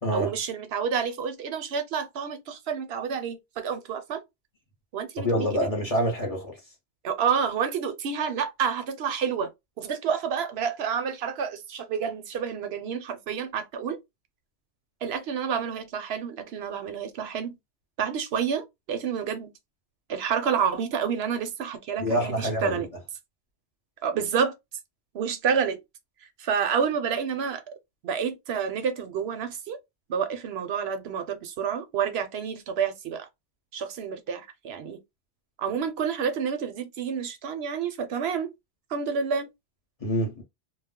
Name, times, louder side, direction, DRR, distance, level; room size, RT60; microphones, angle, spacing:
voice 1, 0.1-4.2 4.9-5.7 7.0-9.5 9.8-14.0 15.0-17.5 18.0-19.5 20.1-22.9 24.0-24.6 25.1-25.8 26.4-27.6 28.0-29.8 30.1-33.3 33.7-35.0 35.6-38.5 38.9-39.5, right 7 dB, 65° right, 0.7 m, -29 dB
voice 2, 5.2-6.6 22.0-22.8 40.0-40.4, equal, 35° left, 0.8 m, -26 dB
2.3 x 2.0 x 3.5 m
omnidirectional pair, 1.2 m